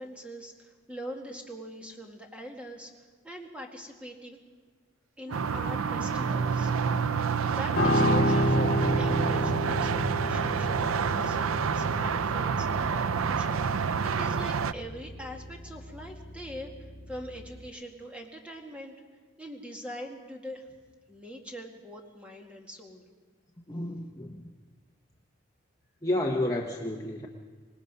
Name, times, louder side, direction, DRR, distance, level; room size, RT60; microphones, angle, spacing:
voice 1, 0.0-2.9 3.2-4.4 5.2-6.7 7.4-19.0 19.4-20.8 21.1-23.0, equal, 5° right, 1 dB, 2.0 m, -43 dB
Wind instrument woodwind instrument, 5.3-9.5, right 9 dB, 70° right, 1.0 m, -39 dB
sound 1, 5.3-14.7, right 6 dB, 85° right, 0.5 m, -28 dB
Piano, 7.8-17.1 17.4-17.7, equal, 45° left, 3.7 m, -30 dB
voice 2, 23.7-24.5 26.0-27.3, left 1 dB, 15° left, 0 dB, 1.0 m, -31 dB
25.5 x 19.5 x 5.5 m, 1.5 s
head